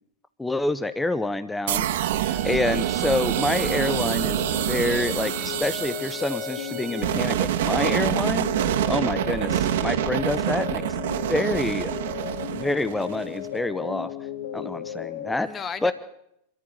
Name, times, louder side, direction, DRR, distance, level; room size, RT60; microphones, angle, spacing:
voice 1, 0.4-1.9 2.4-4.4 4.7-8.5 8.9-10.8 11.3-11.9 12.5-14.1 14.5-15.5 15.8-15.9, left 2 dB, 5° left, 13 dB, 1.3 m, -27 dB
sound 1, 1.7-13.5, right 12 dB, 55° right, 1.3 m, -27 dB
sound 2, 2.0-7.0, right 10 dB, 40° right, 2.6 m, -38 dB
voice 2, 2.3-2.9 8.7-9.1 15.4-15.9, left 6 dB, 25° left, 12 dB, 2.1 m, -38 dB
sound 3, 3.6-15.3, left 10 dB, 55° left, 2.9 m, -35 dB
26.5 x 13.5 x 9.6 m, 0.77 s
figure-of-eight pair, 90°, 0 cm